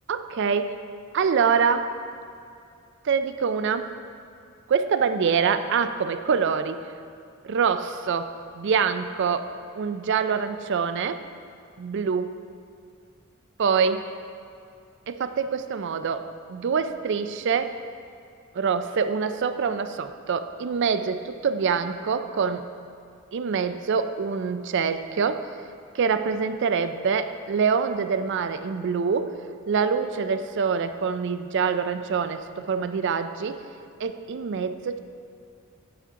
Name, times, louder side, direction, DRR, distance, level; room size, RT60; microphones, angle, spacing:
voice 1, 0.1-0.7 1.1-1.9 3.0-3.9 4.7-6.8 7.4-9.5 9.7-11.2 11.8-12.3 13.6-14.0 15.1-17.8 18.5-22.6 23.3-25.4 25.9-29.3 29.7-33.6 34.0-35.0, right 6 dB, 60° right, 10 dB, 0.4 m, -25 dB
9.3 x 8.2 x 3.7 m, 2.4 s
head